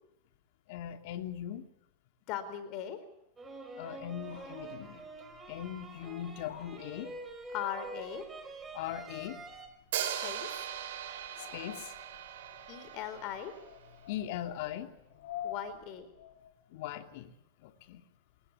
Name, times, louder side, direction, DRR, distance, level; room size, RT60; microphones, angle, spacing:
voice 1, 0.7-1.6 3.8-5.1 5.5-7.1 8.7-9.4 11.4-11.9 14.1-14.9 16.7-17.3 17.6-18.0, left 11 dB, 55° left, 7 dB, 2.9 m, -40 dB
voice 2, 2.3-3.0 7.5-8.3 10.2-10.7 12.7-13.5 15.4-16.1, left 10 dB, 40° left, 13 dB, 4.3 m, -39 dB
sound 1, 3.4-9.7, right 3 dB, 10° right, 4.8 m, -46 dB
sound 2, 4.1-16.6, left 10 dB, 80° left, 4.9 m, -51 dB
Hi-hat, 9.9-13.9, right 10 dB, 75° right, 7.5 m, -39 dB
29.0 x 21.5 x 8.5 m, 0.85 s
supercardioid pair, 165°, 0 cm